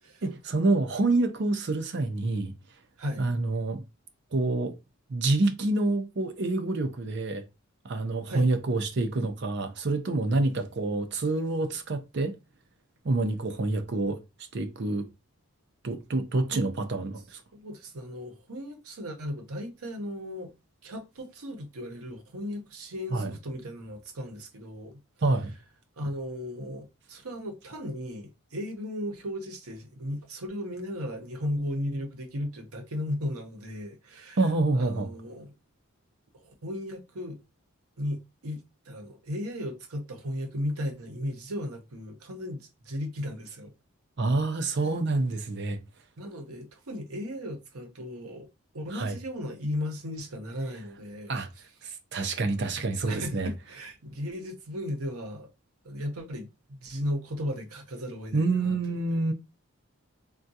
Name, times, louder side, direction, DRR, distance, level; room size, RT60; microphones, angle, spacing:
voice 1, 0.2-2.5 3.2-3.8 4.3-4.7 5.1-7.4 7.8-12.3 13.0-14.2 14.5-15.1 15.8-17.4 23.1-23.3 25.2-25.5 34.4-35.1 44.2-45.8 48.9-49.2 51.3-51.5 51.8-53.5 58.3-59.3, right 2 dB, 50° right, 0.5 m, -27 dB
voice 2, 3.0-3.3 8.3-8.5 16.5-16.6 17.5-20.5 20.8-25.0 26.0-34.4 34.8-35.5 36.3-37.4 38.0-43.7 46.2-48.5 48.7-51.4 53.1-55.5 55.8-58.8, left 1 dB, 85° right, 0.8 m, -36 dB
3.5 x 2.3 x 2.7 m
head